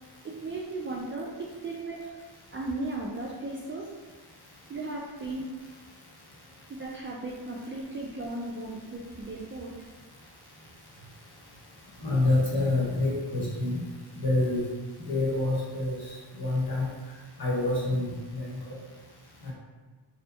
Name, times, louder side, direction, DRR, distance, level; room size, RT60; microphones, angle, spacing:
voice 1, 0.2-2.1 2.5-3.9 4.7-5.5 6.8-9.7, right 2 dB, 30° right, -3 dB, 0.4 m, -36 dB
voice 2, 12.0-13.9 14.2-14.6 15.1-16.9 17.4-18.7 19.4-19.5, left 2 dB, 50° left, -5 dB, 1.1 m, -27 dB
2.7 x 2.2 x 2.6 m, 1.3 s
cardioid pair, 55°, 48 cm